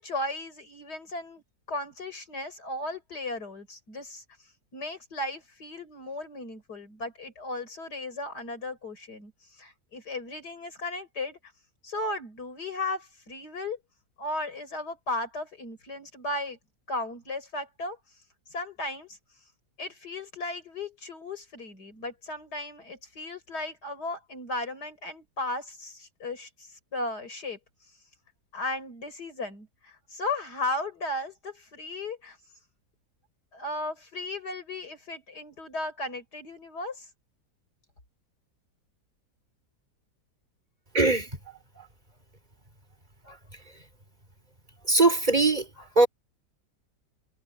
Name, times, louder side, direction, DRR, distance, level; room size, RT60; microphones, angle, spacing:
voice 1, 0.0-1.4 1.7-4.2 4.7-11.4 11.8-13.8 14.2-16.6 16.9-18.0 18.5-19.2 19.8-27.6 28.5-32.4 33.5-37.1, left 2 dB, 70° left, 6.2 m, -35 dB
voice 2, 40.9-41.3 41.7-41.9 43.2-43.4 44.8-46.1, right 3 dB, 25° right, 4.6 m, -22 dB
omnidirectional pair, 1.8 m